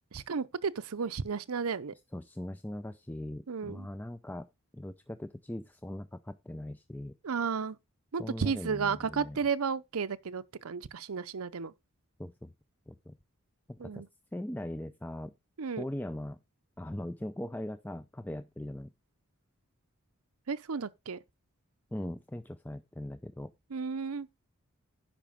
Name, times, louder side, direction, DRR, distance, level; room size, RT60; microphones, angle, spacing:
voice 1, 0.1-1.9 3.5-3.9 7.2-7.8 8.1-11.7 13.8-14.1 15.6-15.8 20.5-21.2 23.7-24.3, right 5 dB, 80° right, 0.6 m, -33 dB
voice 2, 2.1-4.5 4.7-7.1 8.2-9.4 12.2-12.5 12.9-13.2 13.7-14.0 14.3-15.3 15.8-16.4 16.8-18.9 21.9-23.5, left 1 dB, 10° left, 0.5 m, -40 dB
10.5 x 6.0 x 5.1 m
head